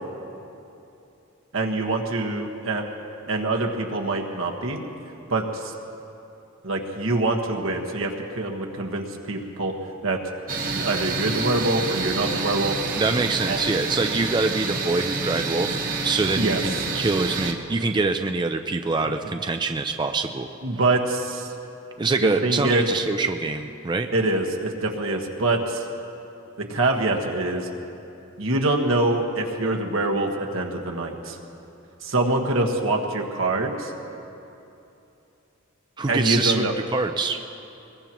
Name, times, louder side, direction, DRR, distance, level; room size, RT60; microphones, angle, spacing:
voice 1, 1.5-2.8 3.3-4.8 5.3-5.7 6.6-9.7 10.0-10.2 10.6-12.8 13.5-13.6 16.4-16.6 20.6-21.5 22.2-22.9 24.1-25.8 26.7-27.7 28.4-31.4 32.0-33.9 36.1-36.7, right 2 dB, 80° right, 1 dB, 1.5 m, -24 dB
sound 1, 10.5-17.5, right 3 dB, 45° right, 1.3 m, -28 dB
voice 2, 13.0-20.5 22.0-24.1 36.0-36.6 36.9-37.4, right 3 dB, 20° right, 6 dB, 0.4 m, -25 dB
22.0 x 20.0 x 3.0 m, 2.9 s
head